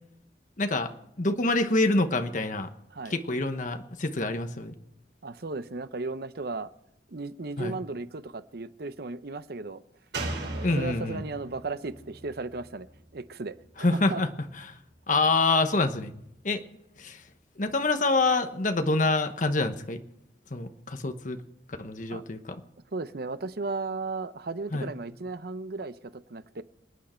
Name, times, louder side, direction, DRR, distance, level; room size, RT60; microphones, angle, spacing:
voice 1, 0.6-0.9 1.2-2.7 3.1-4.7 7.6-7.8 10.6-11.2 13.8-14.3 14.6-14.8 15.1-16.1 16.4-16.6 17.0-17.2 17.6-20.0 20.5-21.4 21.8-22.5 24.7-24.9, left 2 dB, 45° left, 1.1 m, -26 dB
voice 2, 5.2-6.7 7.1-9.8 10.4-12.9 13.1-14.2 22.1-22.2 22.9-26.6, right 3 dB, 60° right, 0.7 m, -35 dB
Slam, 10.1-13.6 13.9-14.0, right 2 dB, 75° right, 5.3 m, -38 dB
27.5 x 9.2 x 4.4 m
head